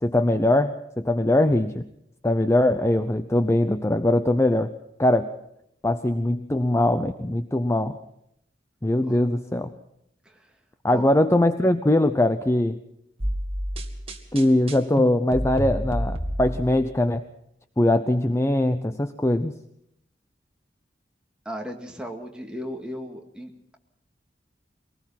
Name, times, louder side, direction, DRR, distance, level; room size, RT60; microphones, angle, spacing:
voice 1, 0.0-1.9 2.2-4.7 5.0-5.3 5.8-8.0 8.8-9.7 10.8-12.8 14.3-17.2 17.8-19.5, left 1 dB, 15° left, 9 dB, 0.7 m, -21 dB
sound 1, 13.2-16.9, equal, 35° right, 2.1 m, -29 dB
voice 2, 21.5-23.8, equal, 5° right, 1 dB, 2.2 m, -36 dB
23.5 x 19.0 x 5.8 m, 0.77 s
head